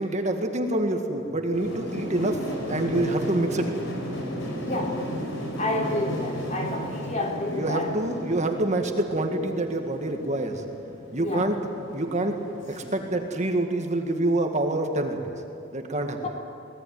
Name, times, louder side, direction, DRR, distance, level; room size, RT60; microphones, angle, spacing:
voice 1, 0.0-3.7 7.5-10.6 11.1-11.6 11.9-12.4 12.7-15.3 15.7-16.2, right 1 dB, 35° right, 4 dB, 1.9 m, -26 dB
sound 1, 1.5-13.3, equal, 70° left, 5.4 m, -35 dB
voice 2, 4.6-5.0 5.6-7.9 11.1-11.5 16.2-16.3, left 2 dB, 35° left, 1 dB, 3.4 m, -29 dB
23.5 x 18.0 x 9.6 m, 2.8 s
head